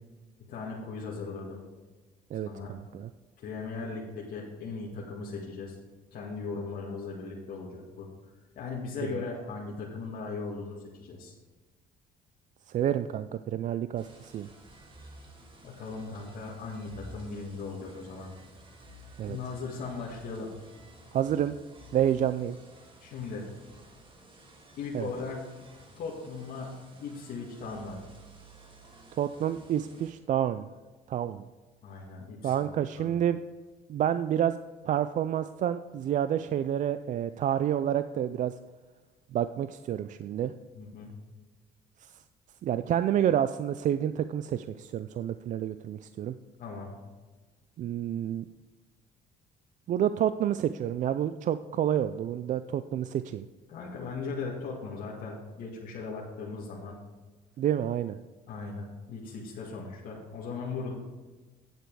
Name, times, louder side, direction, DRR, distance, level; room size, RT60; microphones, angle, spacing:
voice 1, 0.5-1.6 2.4-2.7 3.4-5.7 6.1-8.1 8.6-11.3 15.5-18.3 19.2-20.5 23.0-23.5 24.8-25.5 25.9-26.8 27.0-28.0 31.8-33.1 40.7-41.1 46.6-46.9 53.7-57.0 58.5-60.9, left 4 dB, 60° left, -4 dB, 2.0 m, -38 dB
voice 2, 2.3-3.1 9.0-9.1 12.7-14.5 19.2-19.4 21.1-21.5 21.9-22.6 24.9-25.1 29.2-30.7 31.1-31.4 32.4-33.4 33.9-34.6 34.9-38.5 39.3-40.5 42.0-42.1 42.6-46.4 47.8-48.5 49.9-53.5 57.6-58.2, right 10 dB, 50° right, 12 dB, 0.4 m, -29 dB
sound 1, 14.0-30.1, right 2 dB, 30° right, 2.1 m, -53 dB
9.2 x 8.0 x 4.7 m, 1.3 s
cardioid pair, 110°, 17 cm